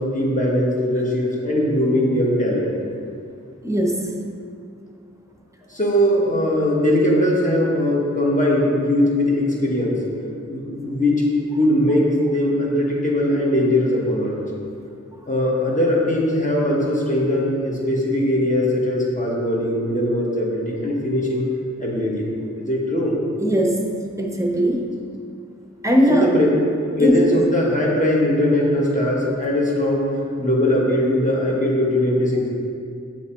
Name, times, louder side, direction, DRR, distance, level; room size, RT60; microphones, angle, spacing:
voice 1, 0.0-2.7 5.7-10.0 10.5-14.4 15.3-21.4 21.8-22.2 22.6-23.2 26.1-26.6 27.0-30.1 30.4-32.5, left 1 dB, 25° left, -4 dB, 1.2 m, -20 dB
voice 2, 3.6-4.0 23.4-23.9 24.2-24.9 25.8-26.3 27.0-27.1, equal, 10° right, 1 dB, 0.7 m, -19 dB
7.5 x 3.2 x 4.3 m, 2.4 s
wide cardioid pair, 45°, 30 cm